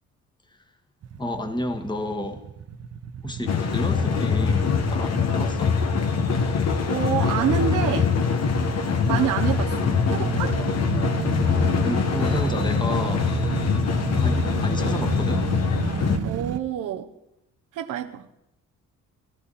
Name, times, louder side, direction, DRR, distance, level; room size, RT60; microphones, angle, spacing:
sound 1, 1.0-16.6, right 7 dB, 55° right, 1.1 m, -32 dB
voice 1, 1.2-2.4 3.2-5.7 11.8-13.3 14.2-15.5, left 1 dB, 15° left, 5 dB, 1.8 m, -31 dB
sound 2, 3.5-16.2, left 6 dB, 60° left, 1.7 m, -23 dB
voice 2, 6.9-8.1 9.0-10.6 16.2-17.1 17.7-18.3, right 10 dB, 80° right, 2 dB, 1.0 m, -27 dB
21.5 x 13.5 x 4.2 m, 0.85 s
cardioid pair, 90°, 30 cm